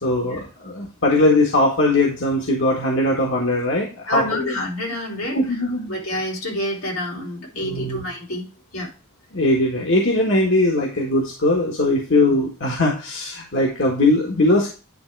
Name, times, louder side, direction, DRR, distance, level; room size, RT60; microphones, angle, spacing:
voice 1, 0.0-4.5 5.4-6.0 7.6-8.1 9.3-14.7, left 2 dB, 60° left, -1 dB, 1.8 m, -20 dB
voice 2, 4.1-8.5 8.7-8.9, left 1 dB, 85° left, -2 dB, 4.0 m, -28 dB
10.5 x 3.8 x 4.6 m, 0.33 s
head